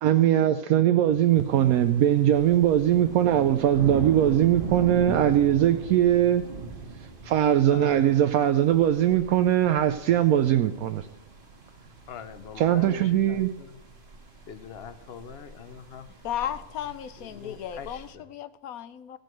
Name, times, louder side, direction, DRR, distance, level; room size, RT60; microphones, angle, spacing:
voice 1, 0.0-6.4 7.0-11.1 12.6-13.5, right 11 dB, 75° right, 8 dB, 1.0 m, -21 dB
sound 1, 1.0-18.1, right 3 dB, 40° right, 1.5 m, -40 dB
voice 2, 7.7-8.3 12.1-13.8 14.5-16.1 16.4-16.5 17.2-18.2, left 7 dB, 55° left, 12 dB, 0.8 m, -43 dB
voice 3, 16.2-19.2, left 10 dB, 75° left, 13 dB, 1.1 m, -35 dB
15.0 x 5.2 x 7.6 m, 1.1 s
omnidirectional pair, 1.5 m